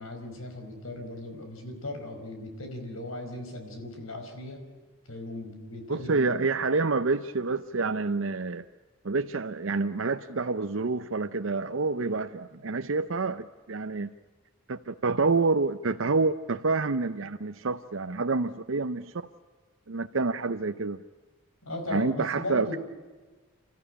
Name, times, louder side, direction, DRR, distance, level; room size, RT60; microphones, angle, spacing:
voice 1, 0.0-4.6 5.1-6.3 12.6-12.7 21.6-22.8, left 2 dB, 75° left, 4.9 m, -38 dB
voice 2, 5.9-8.6 9.0-14.1 14.7-19.1 19.9-21.0 21.9-22.8, right 3 dB, 65° right, 0.7 m, -28 dB
29.5 x 14.0 x 9.9 m
head